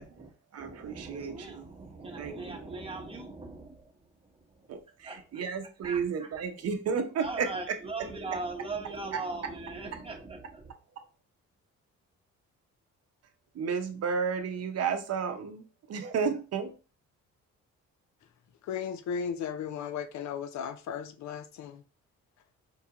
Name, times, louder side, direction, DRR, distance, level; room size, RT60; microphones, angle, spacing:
voice 1, 0.0-4.7 5.0-5.4 5.8-6.3 7.2-10.7, right 3 dB, 20° right, 1.0 m, -40 dB
voice 2, 0.5-1.7 1.9-2.8 4.7-7.5 13.5-16.7, right 6 dB, 55° right, 0.7 m, -32 dB
voice 3, 18.7-21.8, left 7 dB, 65° left, 0.5 m, -35 dB
4.6 x 2.3 x 2.9 m
cardioid pair, 90°, 30 cm